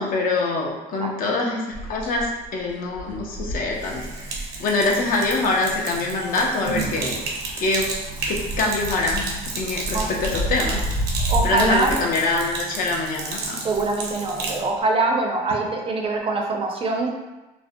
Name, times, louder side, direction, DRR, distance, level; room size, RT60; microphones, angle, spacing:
voice 1, 0.0-4.3 4.6-7.2 7.6-7.9 8.3-10.8 11.4-13.6, left 3 dB, 55° left, 0 dB, 0.5 m, -24 dB
sound 1, 1.7-6.5 6.8-12.0, right 1 dB, 85° left, 1.0 m, -30 dB
Sink (filling or washing), 3.7-14.6, right 3 dB, 75° right, 0.6 m, -32 dB
voice 2, 11.3-11.9 13.4-17.1, right 3 dB, 35° right, 1 dB, 0.4 m, -24 dB
2.5 x 2.0 x 2.5 m, 1.1 s
cardioid pair, 110°, 17 cm